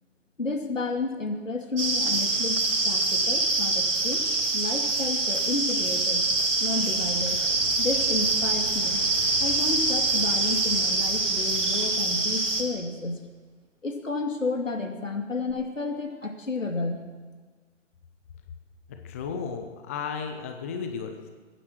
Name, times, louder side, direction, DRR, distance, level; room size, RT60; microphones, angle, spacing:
voice 1, 0.4-2.6 2.8-4.3 4.5-6.3 6.6-7.4 7.8-9.0 9.4-13.2 13.8-17.0, left 3 dB, 85° left, 4 dB, 2.5 m, -31 dB
sound 1, 1.8-12.6, right 2 dB, 75° right, 3.3 m, -25 dB
sound 2, 5.1-13.4 15.5-15.6, right 2 dB, 45° right, 3.3 m, -44 dB
voice 2, 19.0-21.3, left 6 dB, 10° left, 5 dB, 0.5 m, -34 dB
21.5 x 10.0 x 6.3 m, 1.4 s
figure-of-eight pair, 140°, 37 cm